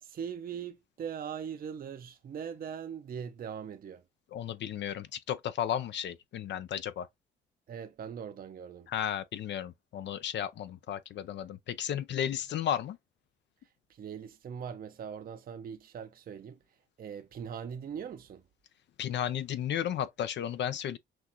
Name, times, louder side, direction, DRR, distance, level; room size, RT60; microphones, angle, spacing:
voice 1, 0.0-4.0 7.7-8.9 13.9-16.6 17.0-18.4, right 7 dB, 45° right, 0.6 m, -41 dB
voice 2, 4.3-7.1 8.9-13.0 19.0-21.0, left 10 dB, 65° left, 0.5 m, -34 dB
6.0 x 2.4 x 2.9 m
cardioid pair, 90°, 20 cm